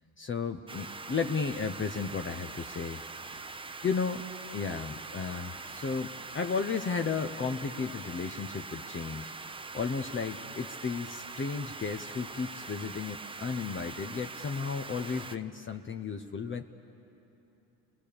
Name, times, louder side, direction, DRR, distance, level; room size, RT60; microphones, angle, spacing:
voice 1, 0.2-3.0 3.3-3.5 3.8-4.2 4.5-9.3 9.7-16.7, left 5 dB, 30° left, 6 dB, 0.8 m, -34 dB
sound 1, 0.7-15.4, right 4 dB, 15° right, 0.7 m, -43 dB
29.5 x 20.0 x 6.9 m, 2.9 s
supercardioid pair, 85°, 40 cm